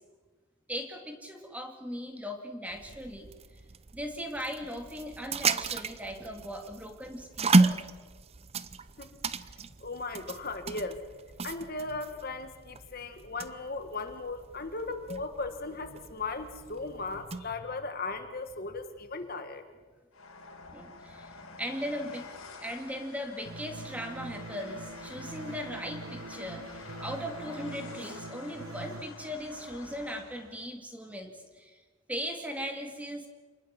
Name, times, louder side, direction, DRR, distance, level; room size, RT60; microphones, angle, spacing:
voice 1, 0.7-3.3 3.9-7.8 20.7-22.3 22.5-31.8 32.1-33.3, equal, 5° right, 4 dB, 2.3 m, -38 dB
sound 1, 2.7-17.6, right 3 dB, 30° right, 0.6 m, -33 dB
voice 2, 9.8-11.0 11.4-19.6, left 3 dB, 45° left, 7 dB, 1.6 m, -37 dB
Train, 20.1-30.6, left 3 dB, 75° left, 4.0 m, -48 dB
sound 2, 23.5-29.0, right 2 dB, 85° right, 1.3 m, -43 dB
28.0 x 20.5 x 7.6 m, 1.4 s
head